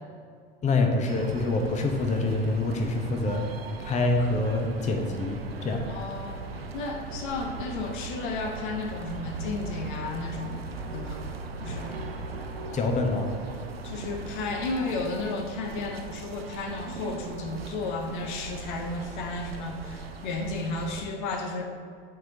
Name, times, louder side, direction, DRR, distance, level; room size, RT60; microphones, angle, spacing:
voice 1, 0.6-3.4 3.8-5.8 12.7-13.3, left 2 dB, 25° left, 4 dB, 0.8 m, -26 dB
sound 1, 1.1-21.0, right 3 dB, 85° right, 0.6 m, -39 dB
voice 2, 5.9-6.4 6.7-10.6 10.9-11.2 11.6-12.0 13.8-21.6, left 3 dB, 55° left, 4 dB, 0.8 m, -33 dB
9.3 x 4.7 x 2.7 m, 2.2 s
figure-of-eight pair, 75°, 29 cm